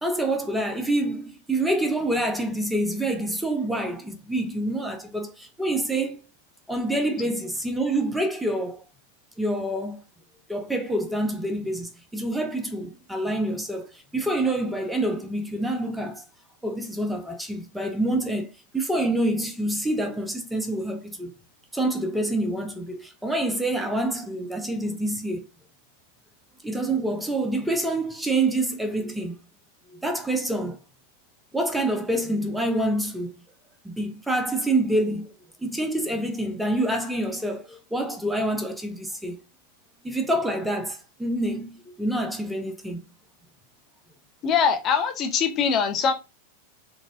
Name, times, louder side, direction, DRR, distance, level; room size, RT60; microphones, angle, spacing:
voice 1, 0.0-6.2 6.7-8.8 9.4-10.0 10.5-16.2 16.6-21.3 21.7-25.5 26.6-29.4 29.9-30.8 31.5-33.3 33.8-35.3 35.6-39.4 40.0-43.0, right 1 dB, 5° right, 0.7 m, -27 dB
voice 2, 44.4-46.1, left 6 dB, 30° left, 0.7 m, -22 dB
3.9 x 3.6 x 2.6 m
figure-of-eight pair, 90°, 0 cm